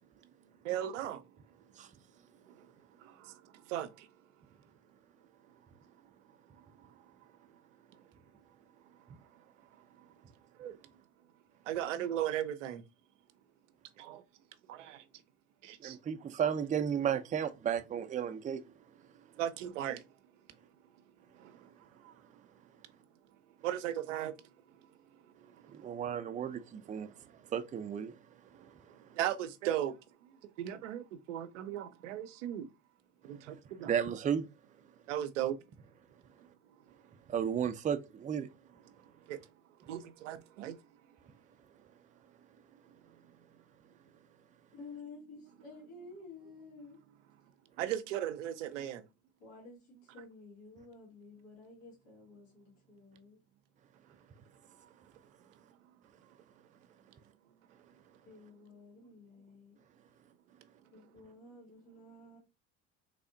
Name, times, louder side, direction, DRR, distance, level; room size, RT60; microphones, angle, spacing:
voice 1, 0.6-1.2 2.5-2.7 3.0-4.1 10.6-10.8 11.7-12.8 14.0-14.2 14.7-15.0 15.6-16.0 19.4-20.0 21.3-21.7 22.0-22.1 23.6-24.4 25.6-25.9 27.0-27.2 28.6-30.0 30.4-32.7 33.2-33.9 35.1-35.6 39.3-39.4 39.9-40.8 47.8-49.0, right 11 dB, 85° right, 0.5 m, -37 dB
voice 2, 15.8-18.6 25.7-27.1 27.5-28.2 33.8-34.4 37.3-38.5, right 8 dB, 20° right, 0.4 m, -33 dB
voice 3, 44.7-47.0 49.4-53.4 58.3-59.8 60.9-62.4, left 3 dB, 85° left, 2.1 m, -52 dB
3.4 x 3.3 x 2.5 m
hypercardioid pair, 70°, 36 cm